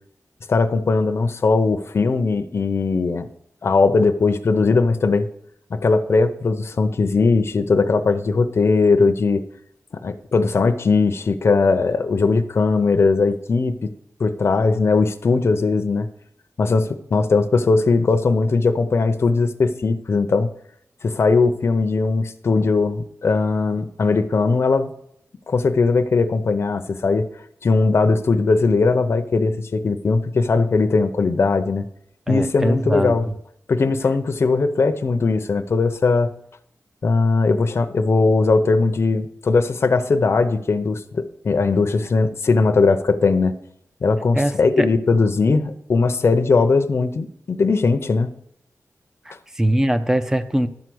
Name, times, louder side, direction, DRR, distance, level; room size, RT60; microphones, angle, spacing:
voice 1, 0.5-3.3 3.6-5.3 5.7-9.4 10.0-13.9 14.2-16.1 16.6-20.5 21.0-24.9 25.5-27.3 27.6-31.8 32.3-33.3 33.7-36.3 37.0-43.5 44.0-48.3, left 4 dB, 50° left, 8 dB, 0.7 m, -19 dB
voice 2, 32.3-33.1 44.3-44.9 49.3-50.7, right 1 dB, 10° right, 10 dB, 0.6 m, -21 dB
12.0 x 4.7 x 7.8 m, 0.72 s
wide cardioid pair, 165°, 6 cm